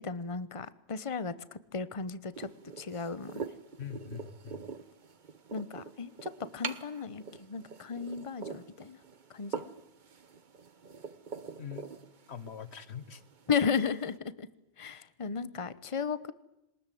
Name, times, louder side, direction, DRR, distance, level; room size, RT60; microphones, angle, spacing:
voice 1, 0.0-2.5 2.8-3.5 5.5-9.0 9.3-9.7 13.5-14.5 14.8-16.3, left 5 dB, 30° left, 16 dB, 1.0 m, -35 dB
sound 1, 2.3-14.2, right 5 dB, 50° right, 1.1 m, -45 dB
voice 2, 3.8-4.6 11.6-11.9 12.3-13.2, left 8 dB, 85° left, 15 dB, 1.4 m, -43 dB
22.5 x 20.5 x 9.3 m, 0.89 s
omnidirectional pair, 1.1 m